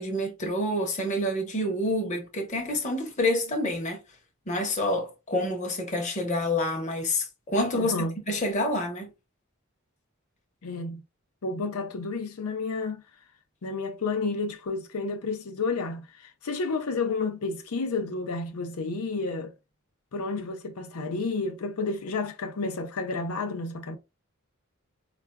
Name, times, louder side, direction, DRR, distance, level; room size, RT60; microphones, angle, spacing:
voice 1, 0.0-4.0 4.5-7.9 8.3-9.1, left 1 dB, 35° left, 0.9 m, -28 dB
voice 2, 7.7-8.1 10.6-11.0 11.4-13.0 13.6-19.5 20.1-24.0, left 3 dB, 90° left, 0.6 m, -31 dB
4.5 x 2.5 x 2.2 m
head